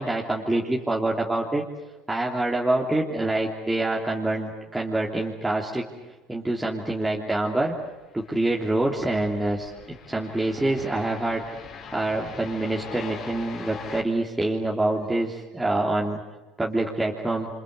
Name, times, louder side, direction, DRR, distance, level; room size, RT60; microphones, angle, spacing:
voice 1, 0.0-1.6 2.1-5.8 6.3-7.7 8.1-11.4 11.9-16.2 16.6-17.5, right 2 dB, 10° right, -3 dB, 3.2 m, -26 dB
sound 1, 7.5-14.0, left 6 dB, 50° left, 4.9 m, -42 dB
28.5 x 25.5 x 8.2 m, 1.1 s
supercardioid pair, 95°, 0 cm